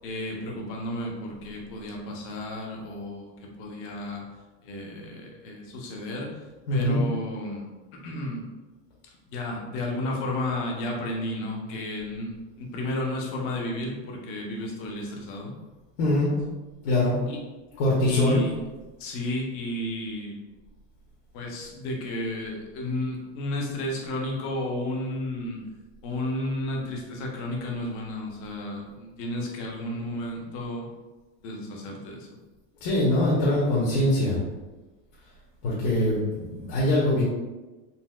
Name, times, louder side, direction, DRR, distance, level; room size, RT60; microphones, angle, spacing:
voice 1, 0.0-4.2 4.6-6.4 6.7-7.7 8.0-8.5 9.3-15.5 17.3-17.4 18.0-18.5 19.0-20.4 21.3-25.6 26.0-30.9 31.4-32.3, left 1 dB, 40° left, 0 dB, 0.6 m, -32 dB
voice 2, 6.7-7.0 16.0-16.3 16.8-17.2 17.8-18.4 32.8-34.4 35.6-37.2, left 1 dB, 60° left, -6 dB, 1.0 m, -23 dB
4.0 x 2.3 x 2.2 m, 1.2 s
supercardioid pair, 165°, 35 cm